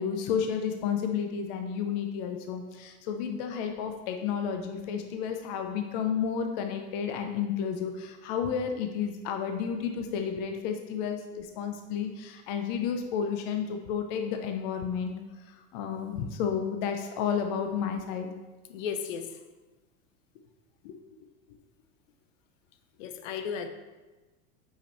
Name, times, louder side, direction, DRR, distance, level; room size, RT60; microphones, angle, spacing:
voice 1, 0.0-15.2 15.5-18.3 20.8-21.0, left 7 dB, 35° left, 5 dB, 0.4 m, -31 dB
voice 2, 18.7-19.3 23.0-23.7, left 7 dB, 65° left, 8 dB, 0.8 m, -34 dB
5.1 x 5.0 x 4.2 m, 1.2 s
supercardioid pair, 155°, 41 cm